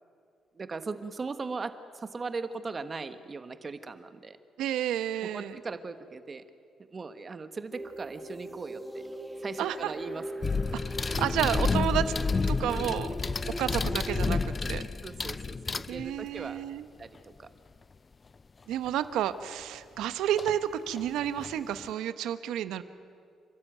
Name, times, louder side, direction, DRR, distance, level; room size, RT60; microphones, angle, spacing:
voice 1, 0.5-4.4 5.2-6.4 6.9-9.0 9.4-10.2 14.6-16.6 17.0-17.5, right 4 dB, 35° right, 10 dB, 1.4 m, -39 dB
voice 2, 4.6-5.6 9.6-9.9 10.7-12.1 12.5-13.1 13.6-14.8 15.9-16.9 18.7-22.8, right 11 dB, 85° right, 12 dB, 0.9 m, -31 dB
sound 1, 7.7-14.6, right 1 dB, 10° right, 2.4 m, -40 dB
sound 2, 10.4-16.4 18.9-19.0 20.4-20.6 21.0-21.9, left 4 dB, 30° left, 0.5 m, -30 dB
29.5 x 13.0 x 9.3 m, 2.3 s
cardioid pair, 90°, 0 cm